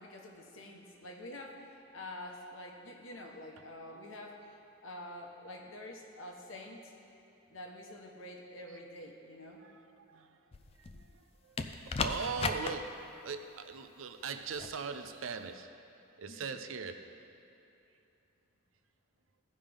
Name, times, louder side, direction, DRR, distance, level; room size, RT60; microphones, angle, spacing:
voice 1, 0.0-4.4 4.8-6.9 7.5-9.6 16.3-16.5, left 1 dB, 80° left, 1 dB, 1.1 m, -47 dB
voice 2, 9.6-15.7 16.2-17.0, right 5 dB, 80° right, 8 dB, 0.6 m, -41 dB
sound 1, 10.5-11.1 11.6-12.7 14.5-14.7, left 4 dB, 30° left, 0.3 m, -35 dB
15.5 x 5.3 x 3.5 m, 3.0 s
head